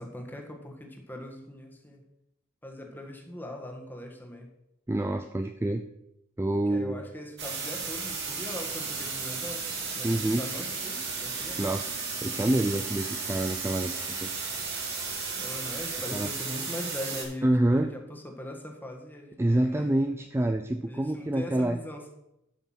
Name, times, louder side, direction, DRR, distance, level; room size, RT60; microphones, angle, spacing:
voice 1, 0.0-2.0 2.6-4.5 6.7-9.7 9.9-11.8 15.3-19.9 20.9-22.1, left 1 dB, 10° left, 2 dB, 1.5 m, -40 dB
voice 2, 4.9-5.8 6.4-7.0 10.0-10.4 11.6-13.9 14.2-14.3 16.1-16.3 17.4-17.9 19.4-21.8, right 1 dB, 10° right, 6 dB, 0.4 m, -27 dB
sound 1, 7.4-17.2, right 4 dB, 55° right, 3.2 m, -34 dB
11.5 x 5.8 x 5.8 m, 0.85 s
head